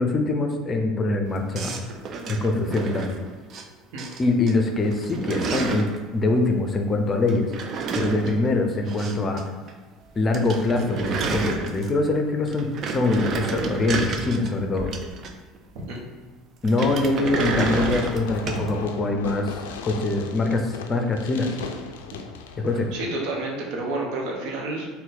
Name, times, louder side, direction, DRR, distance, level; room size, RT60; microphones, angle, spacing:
voice 1, 0.0-1.8 2.3-3.1 4.2-7.5 7.9-9.4 10.2-14.9 16.6-21.5 22.6-22.9, left 2 dB, 30° left, 4 dB, 0.5 m, -24 dB
sound 1, 1.5-3.6 4.0-4.5 4.8-6.0 7.3-9.4 9.7-9.8 10.1-10.2 10.3-12.1 12.5-15.6 16.6-18.7, right 4 dB, 45° right, 0.4 m, -30 dB
Fireworks, 17.1-23.1, left 5 dB, 80° left, 0.3 m, -36 dB
voice 2, 22.9-24.9, right 2 dB, 65° right, -1 dB, 0.8 m, -29 dB
4.0 x 2.2 x 3.9 m, 1.3 s
hypercardioid pair, 70°, 0 cm